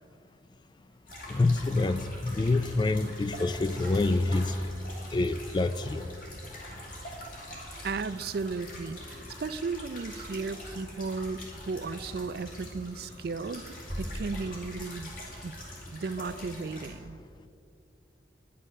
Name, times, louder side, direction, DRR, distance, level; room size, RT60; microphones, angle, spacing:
sound 1, 1.1-16.9, equal, 50° left, 2.7 m, -43 dB
voice 1, 1.3-4.5 5.1-6.1, left 2 dB, 25° left, 13 dB, 0.3 m, -27 dB
voice 2, 7.8-15.1 15.4-15.5 15.9-17.2, right 4 dB, 55° right, 14 dB, 0.4 m, -35 dB
11.0 x 9.6 x 6.4 m, 2.4 s
head